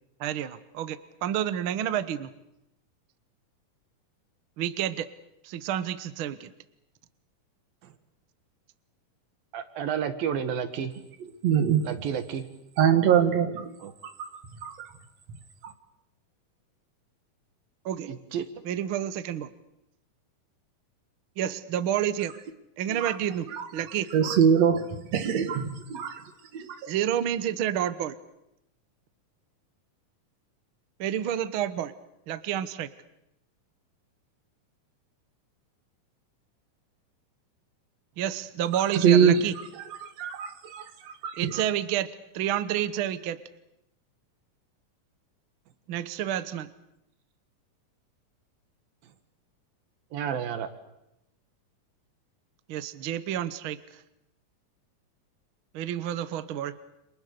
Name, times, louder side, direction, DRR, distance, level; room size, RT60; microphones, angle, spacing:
voice 1, 0.2-2.3 4.6-5.1 5.4-6.5 17.8-18.1 18.6-19.5 21.4-22.3 22.8-23.5 23.7-24.1 26.9-28.2 31.0-31.9 32.3-32.9 38.2-39.5 41.4-42.1 42.3-43.4 45.9-46.7 52.7-53.8 55.7-56.8, right 10 dB, 70° right, 13 dB, 1.2 m, -29 dB
voice 2, 9.5-10.9 11.9-12.5 13.8-13.9 18.1-18.5 50.1-50.7, right 8 dB, 90° right, 10 dB, 3.6 m, -31 dB
voice 3, 11.4-11.9 12.8-13.7 14.0-14.9 15.6-15.7 23.0-23.2 23.5-23.7 24.1-26.2 26.5-26.9 38.9-39.6 40.0-41.6, right 8 dB, 55° right, 8 dB, 2.9 m, -24 dB
30.0 x 27.5 x 6.8 m, 0.84 s
omnidirectional pair, 4.0 m